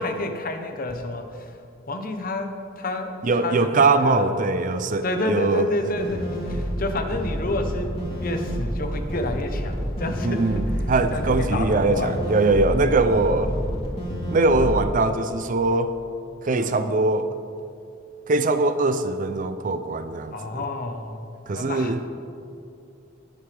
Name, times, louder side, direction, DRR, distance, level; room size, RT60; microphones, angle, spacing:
voice 1, 0.0-1.6 1.9-4.3 5.0-12.2 12.5-12.9 16.5-16.7 20.3-21.3 21.5-21.9, left 2 dB, 40° left, 6 dB, 0.9 m, -30 dB
voice 2, 3.2-5.7 10.2-13.6 14.3-15.9 16.4-17.3 18.3-20.3 21.5-22.0, right 3 dB, 40° right, 10 dB, 0.4 m, -21 dB
sound 1, 5.9-14.8, equal, 25° left, 2.6 m, -29 dB
20.5 x 8.0 x 3.4 m, 2.5 s
head